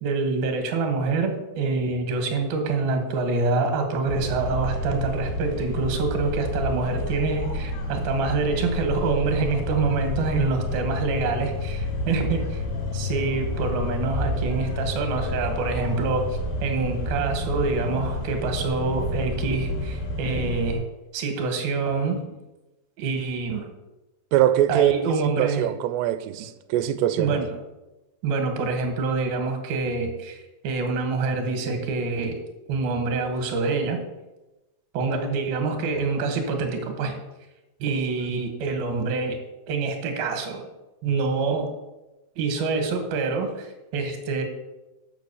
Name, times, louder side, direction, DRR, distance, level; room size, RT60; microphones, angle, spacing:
voice 1, 0.0-12.6 12.9-16.3 16.6-20.8 21.1-22.2 23.0-23.7 24.7-25.7 27.2-27.5 28.2-32.4 32.7-34.0 34.9-37.2 37.8-39.4 39.7-40.6 41.0-41.7 42.4-44.4, right 4 dB, 70° right, 2.9 m, -26 dB
sound 1, 4.1-20.8, left 1 dB, 75° left, 4.0 m, -29 dB
voice 2, 24.3-24.9 25.4-27.4, right 12 dB, 90° right, 2.7 m, -22 dB
7.3 x 6.1 x 7.0 m
omnidirectional pair, 4.8 m